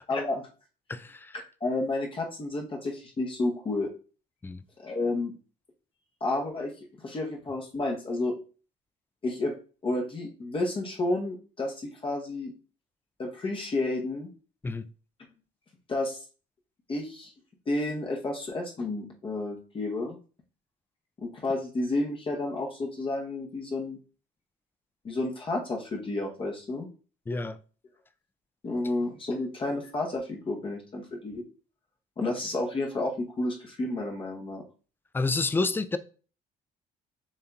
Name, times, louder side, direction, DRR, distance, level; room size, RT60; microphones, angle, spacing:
voice 1, 0.1-0.4 1.6-3.9 4.8-5.3 6.2-6.7 7.0-8.3 9.2-9.5 9.8-12.5 13.2-14.3 15.9-16.2 16.9-17.3 17.7-20.2 21.2-24.0 25.0-26.9 28.6-31.4 32.2-34.6, left 2 dB, 30° left, 0.8 m, -31 dB
voice 2, 0.9-1.4 4.4-4.6 14.6-14.9 27.3-27.6 35.1-36.0, left 3 dB, 10° left, 0.3 m, -29 dB
7.2 x 2.6 x 2.3 m
cardioid pair, 110°, 17 cm